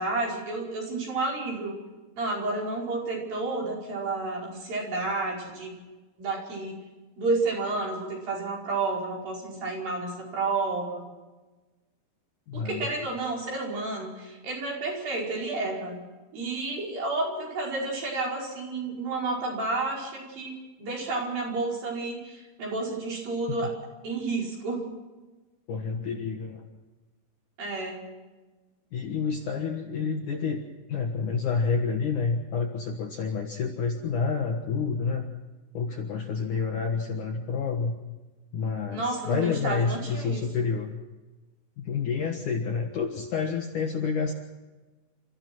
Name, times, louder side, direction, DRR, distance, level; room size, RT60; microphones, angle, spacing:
voice 1, 0.0-1.8 2.2-5.7 6.2-6.8 7.2-11.0 12.5-16.0 16.3-20.5 20.8-23.7 24.0-24.8 27.6-28.0 38.9-40.4, right 3 dB, 50° right, -2 dB, 6.9 m, -31 dB
voice 2, 12.5-13.1 25.7-26.6 28.9-35.3 35.7-37.9 38.5-40.9 41.8-44.3, left 5 dB, 60° left, 2 dB, 2.4 m, -29 dB
30.0 x 14.5 x 6.1 m, 1.2 s
omnidirectional pair, 5.1 m